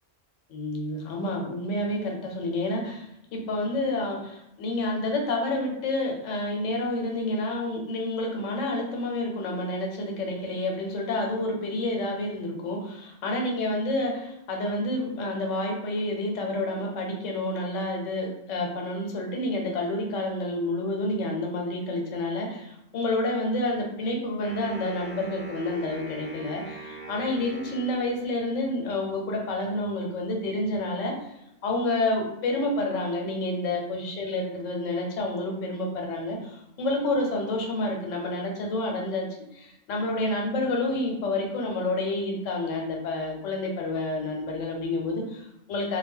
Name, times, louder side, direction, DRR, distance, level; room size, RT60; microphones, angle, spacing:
voice 1, 0.5-3.1 3.3-31.3 31.6-39.3 39.5-46.0, left 2 dB, 90° left, 1 dB, 1.0 m, -29 dB
Wind instrument woodwind instrument, 24.4-28.6, right 2 dB, 55° right, 0.4 m, -41 dB
2.1 x 2.1 x 3.5 m, 0.84 s
omnidirectional pair, 1.3 m